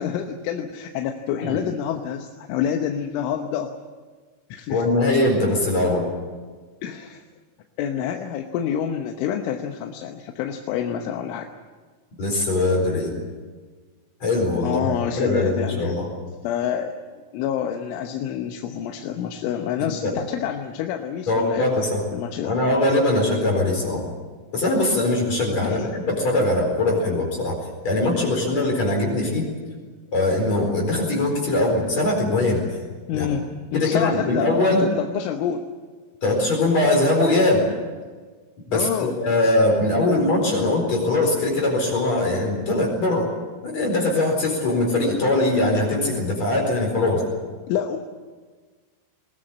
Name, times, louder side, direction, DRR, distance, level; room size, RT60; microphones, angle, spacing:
voice 1, 0.0-3.7 4.5-4.8 6.8-7.2 7.8-11.5 14.6-16.0 16.4-16.9 17.3-22.6 25.6-25.9 33.1-34.5 34.8-35.7 38.7-39.1 47.7-48.0, left 9 dB, 80° left, 4 dB, 3.5 m, -27 dB
voice 2, 4.7-6.1 12.2-13.1 14.2-14.8 15.2-16.1 19.8-20.2 21.3-22.0 22.4-24.0 24.5-27.6 27.8-29.5 30.1-32.6 33.1-33.3 33.7-34.9 36.2-37.7 38.7-43.3 43.6-47.3, left 2 dB, 35° left, 0 dB, 5.2 m, -21 dB
21.5 x 20.0 x 8.7 m, 1.4 s
omnidirectional pair, 5.8 m